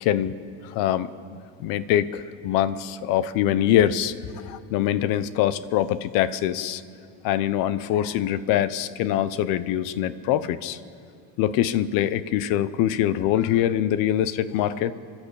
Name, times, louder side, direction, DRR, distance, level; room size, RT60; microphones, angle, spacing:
voice 1, 0.0-4.1 4.5-6.8 7.2-10.8 11.4-14.9, left 11 dB, 70° left, 15 dB, 0.9 m, -24 dB
29.5 x 12.0 x 8.4 m, 2.4 s
cardioid pair, 165°, 36 cm